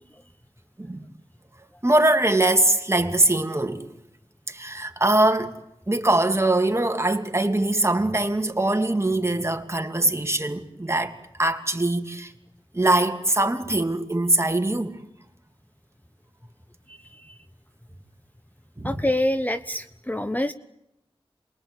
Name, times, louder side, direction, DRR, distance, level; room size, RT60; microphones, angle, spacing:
voice 1, 1.8-3.9 4.5-5.6 5.9-12.3 12.7-15.0 18.8-19.0, right 2 dB, 30° right, 2.8 m, -22 dB
voice 2, 16.9-17.3 18.8-20.5, left 1 dB, 15° left, 1.1 m, -26 dB
28.0 x 22.0 x 9.0 m
wide cardioid pair, 45°, 10 cm